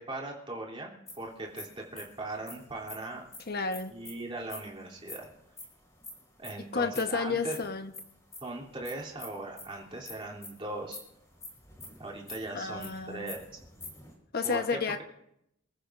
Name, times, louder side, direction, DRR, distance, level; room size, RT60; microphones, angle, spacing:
voice 1, 0.0-3.2 3.9-5.3 6.4-7.6 8.4-11.0 12.0-13.4 14.4-15.0, right 2 dB, 30° right, -2 dB, 3.2 m, -39 dB
sound 1, 1.1-4.6 4.9-6.6 6.9-14.1, left 3 dB, 15° left, 4.6 m, -46 dB
voice 2, 3.5-3.9 6.7-7.9 12.5-13.3 14.3-15.0, left 4 dB, 55° left, 7 dB, 1.1 m, -31 dB
28.5 x 14.5 x 2.6 m, 0.80 s
head